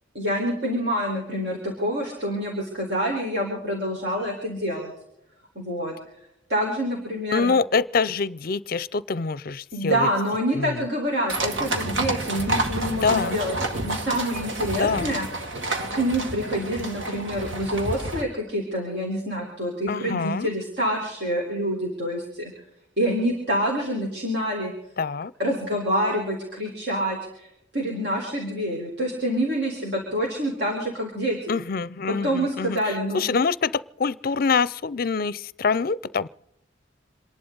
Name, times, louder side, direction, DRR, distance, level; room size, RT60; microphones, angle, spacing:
voice 1, 0.1-4.9 5.5-5.9 6.5-7.5 9.7-13.5 13.8-15.3 15.9-22.5 23.0-24.7 25.4-27.5 27.7-31.5 32.1-33.2, equal, 60° right, -2 dB, 4.2 m, -27 dB
voice 2, 7.3-10.1 10.5-10.8 13.0-13.4 14.8-15.1 19.9-20.5 25.0-25.3 31.5-36.3, left 5 dB, 50° left, 20 dB, 0.5 m, -25 dB
sound 1, 11.3-18.2, right 2 dB, 85° right, 2.2 m, -29 dB
27.5 x 11.5 x 3.9 m, 0.82 s
head